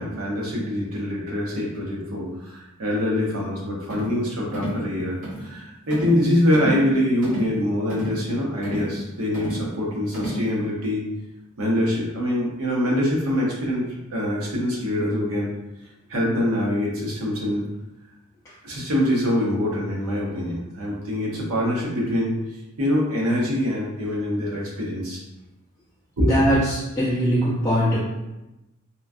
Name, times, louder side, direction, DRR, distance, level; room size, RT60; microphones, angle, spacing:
voice 1, 0.0-11.1 11.6-15.5 16.1-17.6 18.6-22.3 22.8-25.2 26.2-26.3, left 1 dB, 80° right, -4 dB, 0.8 m, -24 dB
sound 1, 3.9-4.2 4.5-4.8 5.2-5.5 5.9-6.2 6.5-6.9 7.2-7.5 7.9-8.2 8.6-9.0 9.3-9.7 10.1-10.5, right 1 dB, 40° right, 1.1 m, -30 dB
voice 2, 26.2-28.0, equal, 15° left, -10 dB, 0.6 m, -21 dB
2.9 x 2.3 x 2.5 m, 0.97 s
head